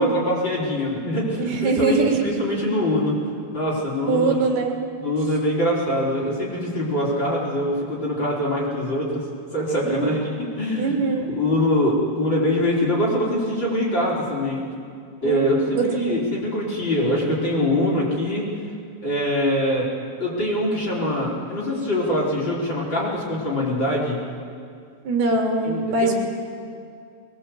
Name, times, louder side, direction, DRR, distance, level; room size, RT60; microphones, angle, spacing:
voice 1, 0.0-3.2 3.5-4.3 5.0-9.2 9.5-11.0 11.3-14.7 15.2-18.5 19.0-19.9 20.2-24.2 25.6-26.1, left 1 dB, 25° left, -4 dB, 4.5 m, -23 dB
voice 2, 1.4-2.1 4.1-4.8 9.8-10.2 10.8-11.3 15.2-16.3 25.1-26.1, right 3 dB, 70° right, 1 dB, 4.0 m, -22 dB
22.0 x 21.0 x 7.9 m, 2.3 s
omnidirectional pair, 4.8 m